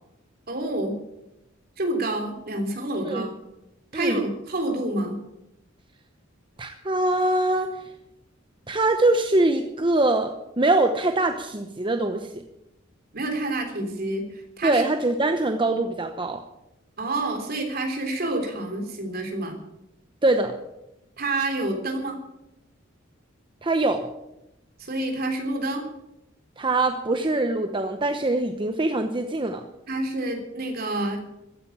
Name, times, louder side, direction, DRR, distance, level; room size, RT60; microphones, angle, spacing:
voice 1, 0.5-1.0 1.8-3.3 3.9-5.2 13.1-14.8 17.0-19.6 21.2-22.2 24.8-25.8 29.9-31.2, right 2 dB, 50° right, 3 dB, 3.4 m, -28 dB
voice 2, 6.6-7.8 8.7-12.4 14.6-16.4 20.2-20.5 23.6-24.1 26.6-29.6, right 2 dB, 25° right, 6 dB, 0.9 m, -23 dB
15.0 x 10.5 x 8.6 m, 0.91 s
head